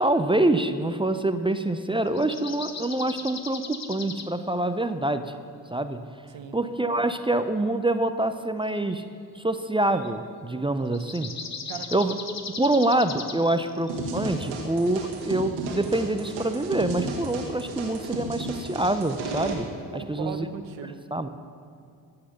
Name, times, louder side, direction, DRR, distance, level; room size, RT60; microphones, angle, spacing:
voice 1, 0.0-5.3 5.7-6.0 6.5-9.0 9.3-11.3 11.9-12.1 12.6-19.7 19.9-20.5 21.1-21.3, right 2 dB, 10° right, 9 dB, 0.5 m, -25 dB
sound 1, 2.1-4.3 8.7-9.0 10.0-10.1 10.9-14.1 15.2-15.3, left 5 dB, 35° left, 1.1 m, -38 dB
sound 2, 13.9-19.5, right 3 dB, 85° right, 1.7 m, -33 dB
voice 2, 19.9-21.0, right 8 dB, 65° right, 8 dB, 1.1 m, -37 dB
14.5 x 5.8 x 6.6 m, 2.4 s
hypercardioid pair, 55°, 48 cm